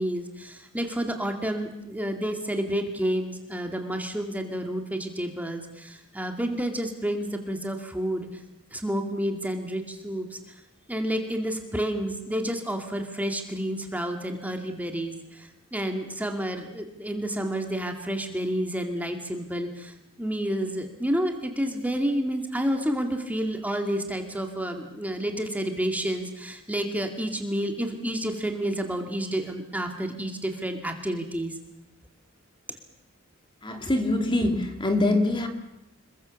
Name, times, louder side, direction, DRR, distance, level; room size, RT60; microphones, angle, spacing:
voice 1, 0.0-8.4 8.7-10.6 10.9-31.5 32.7-32.8, equal, 5° right, 4 dB, 2.3 m, -30 dB
voice 2, 33.6-35.5, left 2 dB, 25° left, 5 dB, 2.5 m, -24 dB
27.5 x 21.5 x 7.2 m, 0.89 s
head